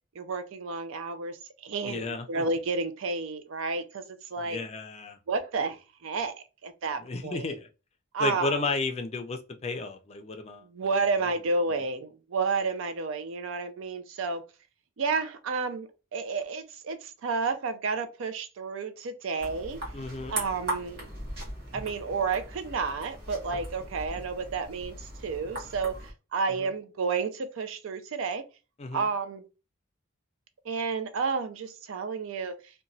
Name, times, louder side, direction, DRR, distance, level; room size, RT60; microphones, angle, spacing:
voice 1, 0.2-4.0 4.3-4.6 5.3-6.3 6.6-7.6 8.1-8.7 10.6-14.4 15.0-19.8 20.3-21.1 21.7-28.5 28.9-29.4 30.6-32.6, right 4 dB, 70° right, 0.4 m, -31 dB
voice 2, 1.8-2.4 4.4-5.2 7.0-7.7 8.2-10.7 19.9-20.3 26.6-26.7 28.8-29.1, left 3 dB, 30° left, 0.4 m, -33 dB
sound 1, 19.4-26.1, right 1 dB, 50° right, 1.3 m, -39 dB
2.9 x 2.2 x 2.6 m
head